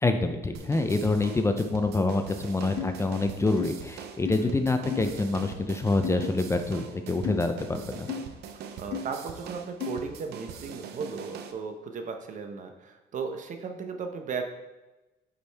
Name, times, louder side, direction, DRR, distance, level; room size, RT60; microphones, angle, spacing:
voice 1, 0.0-8.1, left 3 dB, 15° left, 7 dB, 0.5 m, -26 dB
sound 1, 0.5-11.5, right 6 dB, 75° right, 0.7 m, -43 dB
sound 2, 2.8-2.9 3.6-3.7 4.3-4.4 4.9-5.1 6.0-6.3 7.2-7.4 8.1-8.2 8.9-9.0 9.8-10.0, left 9 dB, 90° left, 0.9 m, -33 dB
voice 2, 8.5-14.4, right 5 dB, 50° right, 5 dB, 0.9 m, -36 dB
8.6 x 5.2 x 3.4 m, 1.1 s
cardioid pair, 110°, 17 cm